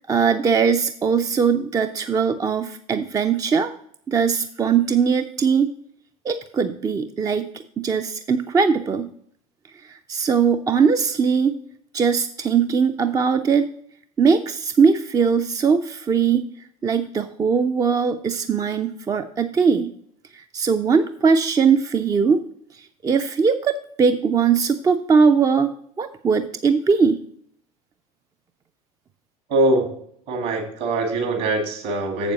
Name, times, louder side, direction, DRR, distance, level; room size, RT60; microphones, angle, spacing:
voice 1, 0.1-3.8 4.1-5.7 6.2-9.1 9.9-11.6 11.9-13.7 14.2-16.5 16.8-19.9 20.3-22.4 22.7-25.7 26.0-27.2, right 6 dB, 20° right, 9 dB, 0.4 m, -20 dB
voice 2, 29.5-29.9 30.3-32.3, right 2 dB, 55° right, 4 dB, 2.1 m, -22 dB
7.4 x 7.3 x 4.0 m, 0.65 s
figure-of-eight pair, 75°, 19 cm